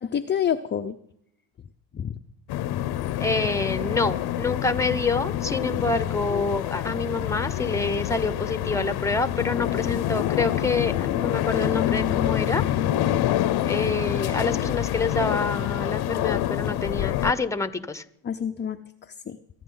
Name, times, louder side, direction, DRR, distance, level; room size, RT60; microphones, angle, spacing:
voice 1, 0.0-1.0 1.9-2.2 18.2-18.8 19.1-19.4, left 8 dB, 25° left, 6 dB, 0.6 m, -28 dB
sound 1, 2.5-17.3, left 12 dB, 60° left, 0.8 m, -26 dB
voice 2, 3.2-12.6 13.6-18.0, left 3 dB, 5° left, 12 dB, 1.0 m, -27 dB
22.5 x 9.6 x 3.9 m, 0.75 s
supercardioid pair, 85°, 44 cm